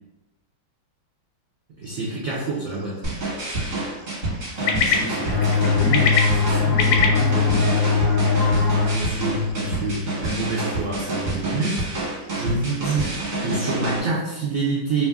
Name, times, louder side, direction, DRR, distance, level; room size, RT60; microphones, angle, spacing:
sound 1, 1.8-13.5, left 5 dB, 85° left, 1.5 m, -30 dB
voice 1, 1.8-3.0 8.8-11.8 12.3-15.1, right 3 dB, 75° right, -5 dB, 0.7 m, -27 dB
sound 2, 3.0-14.0, right 2 dB, 45° right, 1.3 m, -28 dB
voice 2, 4.5-7.7, left 2 dB, 60° left, -7 dB, 0.8 m, -30 dB
sound 3, 5.3-10.7, left 4 dB, 5° left, 0.5 m, -22 dB
3.2 x 2.5 x 3.4 m, 0.99 s
omnidirectional pair, 2.3 m